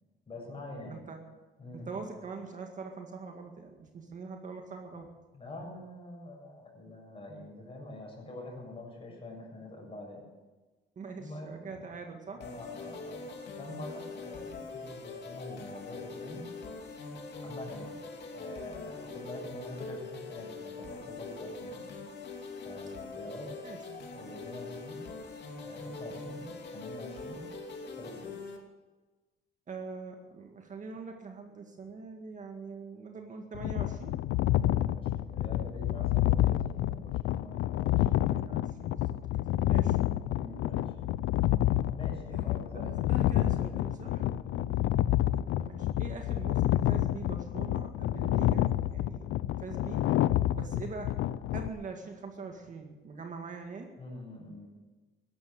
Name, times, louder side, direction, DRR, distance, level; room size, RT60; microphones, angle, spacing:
voice 1, 0.3-1.0 1.6-2.1 5.3-10.2 11.2-11.9 12.3-13.3 13.6-16.4 17.4-17.9 18.3-21.8 22.6-23.5 24.1-25.0 25.6-26.5 26.7-27.4 27.9-28.3 34.4-38.2 40.3-41.1 41.9-43.0 44.4-44.7 54.0-54.7, left 1 dB, 30° left, -1 dB, 7.5 m, -45 dB
voice 2, 0.8-1.2 1.7-5.1 11.0-12.4 23.6-24.1 29.7-34.2 36.0-36.1 38.2-40.0 42.3-44.3 45.6-50.1 50.5-51.1 51.5-53.9, right 4 dB, 40° right, 3 dB, 2.0 m, -43 dB
sound 1, 12.4-28.6, left 3 dB, 60° left, 3.0 m, -43 dB
sound 2, 33.5-51.7, left 14 dB, 85° left, 0.6 m, -28 dB
15.0 x 12.0 x 7.7 m, 1.2 s
cardioid pair, 110°, 20 cm